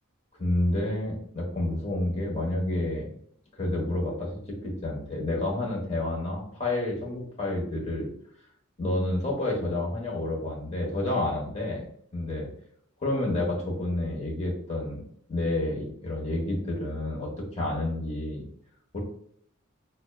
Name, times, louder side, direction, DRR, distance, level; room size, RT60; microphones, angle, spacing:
voice 1, 0.4-3.1 3.5-8.1 8.8-11.8 12.1-12.5 13.0-15.0 15.3-18.4 18.9-19.0, left 1 dB, 30° left, -2 dB, 1.1 m, -29 dB
5.9 x 2.2 x 2.3 m, 0.65 s
head